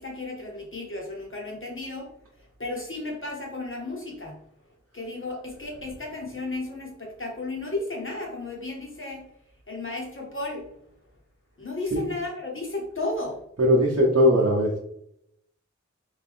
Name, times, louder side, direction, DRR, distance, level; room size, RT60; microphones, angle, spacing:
voice 1, 0.0-2.1 2.6-4.4 4.9-9.2 9.7-10.6 11.6-13.4, left 2 dB, 45° left, -1 dB, 1.2 m, -33 dB
voice 2, 13.7-14.8, equal, 55° right, -5 dB, 0.9 m, -19 dB
3.4 x 2.6 x 3.6 m, 0.73 s
wide cardioid pair, 55°, 30 cm